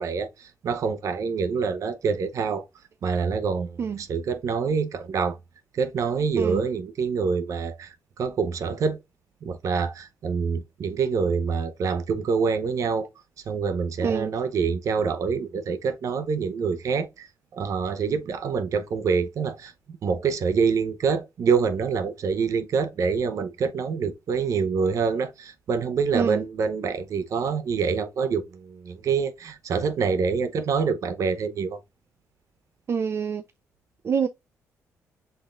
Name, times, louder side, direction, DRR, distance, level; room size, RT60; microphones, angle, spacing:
voice 1, 0.0-2.6 3.0-5.4 5.7-9.0 9.4-13.1 13.5-17.3 17.5-19.7 20.0-31.8, right 5 dB, 60° right, 0.8 m, -26 dB
voice 2, 14.0-14.3 26.1-26.4 32.9-33.4 34.0-34.3, right 6 dB, 45° right, 0.4 m, -26 dB
5.7 x 3.5 x 2.4 m
cardioid pair, 80°, 6 cm